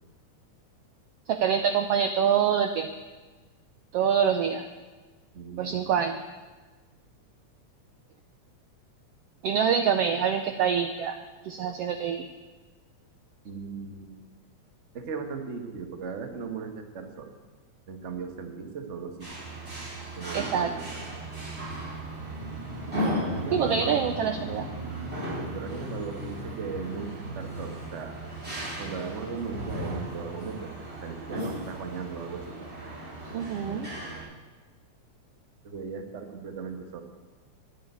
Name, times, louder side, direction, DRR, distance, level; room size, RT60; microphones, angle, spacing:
voice 1, 1.3-2.9 3.9-4.6 5.6-6.2 9.4-11.2 11.4-12.2 20.3-20.7 23.5-24.6 33.3-33.9, right 7 dB, 85° right, 7 dB, 1.3 m, -25 dB
voice 2, 5.3-5.9 13.4-14.2 14.9-17.3 17.9-19.3 20.2-21.1 23.4-23.9 25.4-28.1 28.8-32.5 35.6-37.0, right 5 dB, 70° right, 5 dB, 0.6 m, -37 dB
sound 1, 19.2-34.2, equal, 20° right, 5.2 m, -36 dB
12.0 x 8.8 x 9.5 m, 1.3 s
omnidirectional pair, 3.6 m